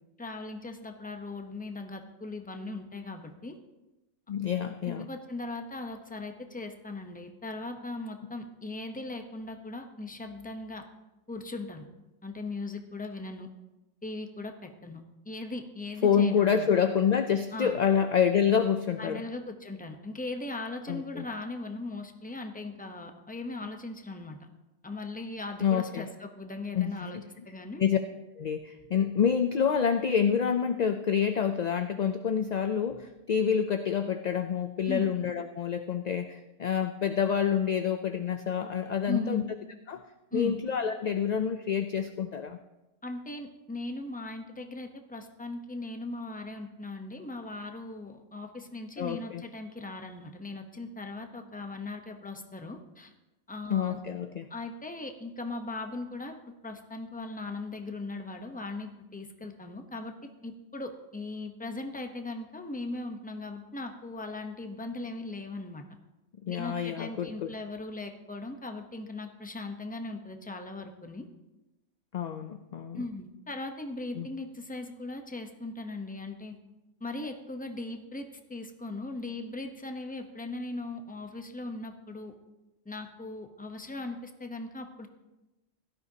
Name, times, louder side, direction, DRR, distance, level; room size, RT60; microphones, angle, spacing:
voice 1, 0.2-3.6 4.7-10.8 11.3-11.8 12.2-13.5 14.0-16.7 17.5-17.8 19.0-24.4 24.8-27.2 27.5-27.8 34.9-35.1 39.1-39.4 40.3-40.6 43.0-53.1 53.5-54.0 54.5-56.4 56.6-65.8 66.5-71.3 72.9-76.6 77.0-82.3 82.8-85.1, left 2 dB, 10° left, 5 dB, 0.8 m, -39 dB
voice 2, 4.3-5.1 16.0-19.2 20.9-21.3 25.6-26.1 26.7-27.2 27.8-28.0 28.4-39.5 39.9-40.0 40.3-42.6 49.0-49.4 53.7-54.5 66.4-67.5 72.1-73.0 74.2-74.3, left 7 dB, 50° left, 8 dB, 0.5 m, -27 dB
16.5 x 12.5 x 2.8 m, 1.0 s
omnidirectional pair, 1.1 m